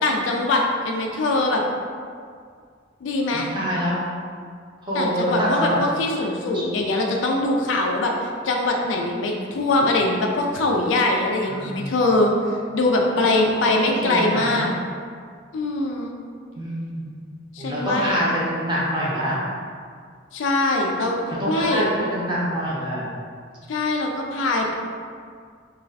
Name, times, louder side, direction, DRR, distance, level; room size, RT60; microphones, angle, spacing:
voice 1, 0.0-1.6 3.0-3.5 4.9-12.3 12.7-14.7 15.5-16.1 17.5-18.2 20.3-21.2 21.5-21.9 23.7-24.7, left 2 dB, 70° left, 1 dB, 0.3 m, -22 dB
voice 2, 3.3-4.0 4.8-5.8 6.5-6.6 11.5-11.9 13.2-13.4 13.8-14.6 16.5-17.2 17.6-19.4 21.4-23.0, equal, 25° right, -7 dB, 0.7 m, -25 dB
2.4 x 2.3 x 3.3 m, 2.1 s
head